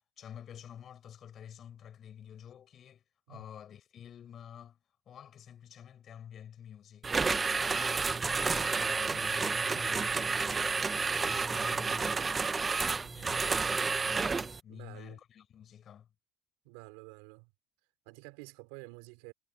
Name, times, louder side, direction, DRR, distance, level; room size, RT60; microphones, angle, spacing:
voice 1, 0.0-4.8 5.1-8.0 8.3-16.1, left 9 dB, 50° left, 7.4 m, -50 dB
sound 1, 7.0-14.6, right 4 dB, 25° right, 1.1 m, -30 dB
voice 2, 14.7-15.2 16.6-17.5 18.1-19.3, right 27 dB, 90° right, 4.2 m, -50 dB
supercardioid pair, 90°, 0 cm